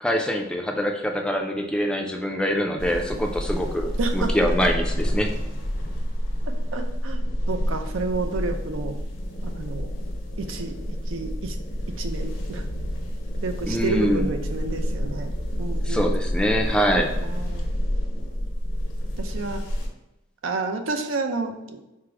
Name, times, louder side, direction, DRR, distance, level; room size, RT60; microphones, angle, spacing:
voice 1, 0.0-5.3 13.7-14.3 15.8-17.1, equal, 5° left, 2 dB, 0.3 m, -24 dB
sound 1, 2.8-19.9, equal, 85° left, 0.8 m, -28 dB
voice 2, 4.0-4.3 6.4-7.2 7.5-9.0 9.4-9.9 10.4-10.8 11.1-11.6 11.9-12.7 13.4-16.1 17.2-17.6 19.2-19.6 20.4-21.8, right 3 dB, 90° right, 6 dB, 0.5 m, -30 dB
4.5 x 2.0 x 4.6 m, 0.94 s
head